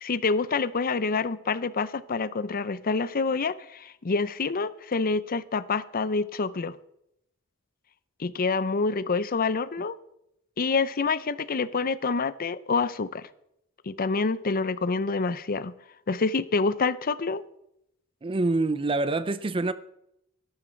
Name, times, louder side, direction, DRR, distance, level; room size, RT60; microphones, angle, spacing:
voice 1, 0.0-6.8 8.2-10.0 10.6-13.2 13.9-15.7 16.1-17.4, left 4 dB, 45° left, 0.6 m, -27 dB
voice 2, 18.2-19.7, right 2 dB, 25° right, 0.5 m, -26 dB
13.0 x 12.5 x 4.5 m
head